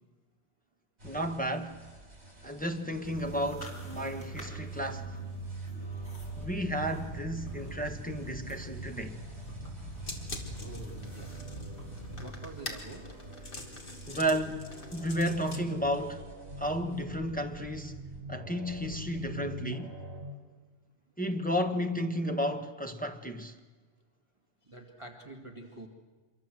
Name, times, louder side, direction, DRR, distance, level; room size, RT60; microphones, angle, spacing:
voice 1, 1.0-1.8 2.4-5.1 6.4-9.2 14.1-14.6 14.9-16.2 16.6-18.0 18.3-19.9 21.2-23.5, equal, 5° left, 1.4 m, -32 dB
sound 1, 1.0-20.3, equal, 65° right, 5.6 m, -46 dB
sound 2, 3.0-12.2, right 2 dB, 65° left, 5.1 m, -42 dB
sound 3, 10.0-15.6, left 1 dB, 50° left, 2.5 m, -44 dB
voice 2, 10.6-11.3 12.2-13.1 24.7-25.9, right 2 dB, 25° right, 2.3 m, -46 dB
26.0 x 23.0 x 7.8 m
omnidirectional pair, 1.2 m